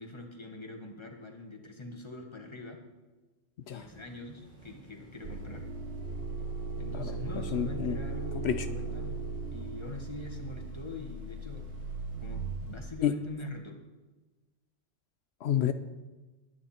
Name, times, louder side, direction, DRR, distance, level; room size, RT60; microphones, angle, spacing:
voice 1, 0.0-2.8 3.6-5.7 6.8-11.7 12.2-13.8, left 2 dB, 25° left, 2 dB, 1.8 m, -43 dB
sound 1, 3.6-13.0, right 1 dB, 45° right, 4.1 m, -55 dB
sound 2, 5.2-12.8, right 3 dB, 85° right, 1.4 m, -37 dB
voice 2, 7.5-8.0 8.4-8.7 13.0-13.1 15.4-15.7, left 10 dB, 80° left, 10 dB, 0.9 m, -29 dB
21.0 x 9.7 x 4.4 m, 1.2 s
omnidirectional pair, 1.1 m